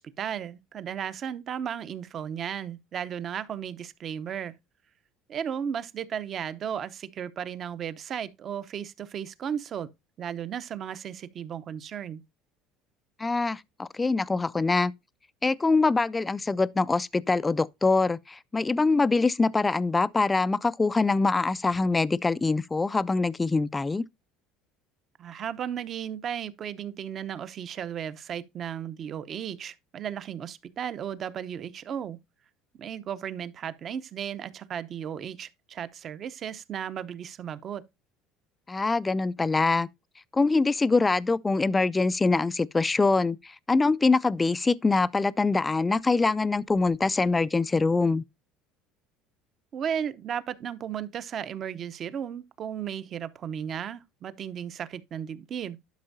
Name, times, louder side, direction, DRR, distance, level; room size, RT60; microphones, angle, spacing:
voice 1, 0.0-4.5 5.3-9.9 10.2-12.2 25.2-32.2 32.8-37.8 49.7-55.8, right 8 dB, 35° right, 0.7 m, -35 dB
voice 2, 13.2-14.9 15.4-24.1 38.7-39.9 40.3-48.2, left 3 dB, 15° left, 0.3 m, -24 dB
11.5 x 5.4 x 2.6 m
cardioid pair, 135°, 0 cm